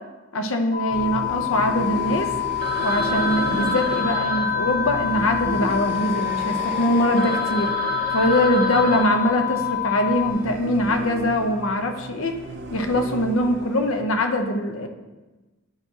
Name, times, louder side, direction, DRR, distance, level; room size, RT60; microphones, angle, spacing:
voice 1, 0.3-2.3 2.8-7.7 8.1-12.4 12.7-14.9, left 1 dB, 80° left, 6 dB, 0.7 m, -22 dB
sound 1, 0.7-10.3, left 20 dB, 35° left, 0.3 m, -27 dB
sound 2, 0.9-14.0, right 2 dB, 55° right, 0.6 m, -34 dB
Telephone, 2.6-6.4 6.9-7.0 7.2-10.0, right 2 dB, 25° right, 0.9 m, -30 dB
9.4 x 4.5 x 2.8 m, 1.2 s
head